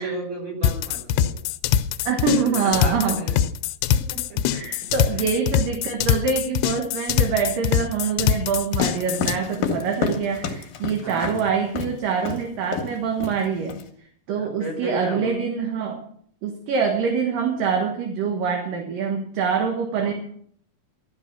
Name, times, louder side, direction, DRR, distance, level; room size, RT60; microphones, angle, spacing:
voice 1, 0.0-1.4 2.3-3.4 3.9-4.6 5.1-5.3 11.0-11.4 14.4-15.4 20.0-20.1, right 2 dB, 30° right, 1 dB, 5.5 m, -34 dB
sound 1, 0.6-9.4, left 9 dB, 85° left, 2.9 m, -23 dB
voice 2, 2.0-3.2 4.5-13.7 14.3-16.0 16.4-20.1, right 6 dB, 60° right, 3 dB, 2.8 m, -25 dB
sound 2, 8.7-11.4 11.8-11.9 12.3-12.4 12.7-13.0 13.2-13.8, left 5 dB, 60° left, 2.8 m, -28 dB
12.5 x 12.0 x 6.1 m, 0.62 s
omnidirectional pair, 5.0 m